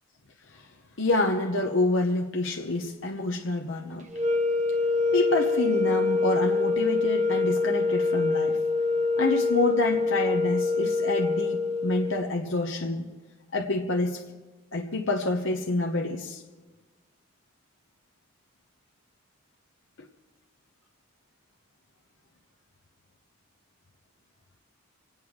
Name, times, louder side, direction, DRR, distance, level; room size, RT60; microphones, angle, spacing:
voice 1, 1.0-4.1 5.1-8.6 9.2-13.1 13.5-14.2 14.7-16.4, left 2 dB, 60° left, 1 dB, 1.0 m, -27 dB
sound 1, 4.1-12.3, left 3 dB, 35° right, 0.8 m, -25 dB
25.5 x 9.3 x 4.9 m, 1.3 s
head